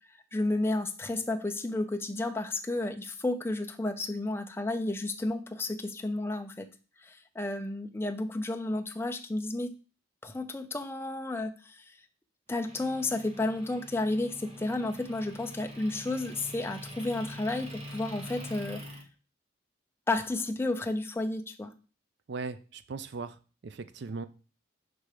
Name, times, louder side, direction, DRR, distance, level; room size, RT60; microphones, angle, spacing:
voice 1, 0.3-6.7 7.0-9.7 10.2-11.9 12.5-18.8 20.1-21.7, left 2 dB, 10° left, 6 dB, 0.4 m, -32 dB
Motor vehicle (road) / Engine, 12.7-19.0, equal, 30° right, 1.0 m, -44 dB
voice 2, 22.3-23.4 23.6-24.3, right 4 dB, 55° right, 13 dB, 0.4 m, -38 dB
6.0 x 3.3 x 4.9 m, 0.35 s
head